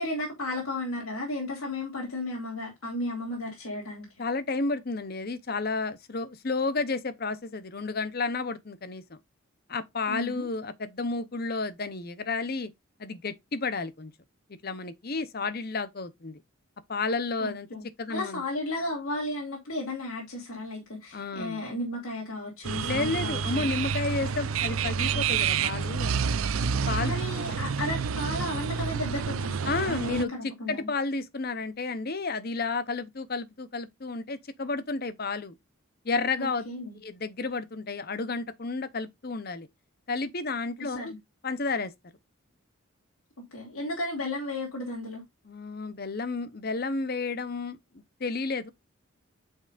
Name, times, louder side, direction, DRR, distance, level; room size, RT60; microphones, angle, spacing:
voice 1, 0.0-4.1 10.1-10.5 17.4-23.7 27.0-30.9 36.4-37.0 40.9-41.1 43.5-45.2, left 1 dB, 85° left, 2.5 m, -34 dB
voice 2, 4.2-9.2 9.7-12.7 13.0-14.1 14.6-16.4 16.9-17.7 18.0-18.4 21.1-21.6 22.8-26.2 26.9-27.2 29.7-35.6 36.0-36.7 37.0-39.7 40.1-41.1 41.4-41.9 45.4-47.8 48.2-48.7, left 3 dB, 45° left, 0.7 m, -31 dB
sound 1, 22.6-30.2, right 6 dB, 75° right, 0.5 m, -29 dB
8.6 x 5.4 x 2.5 m
head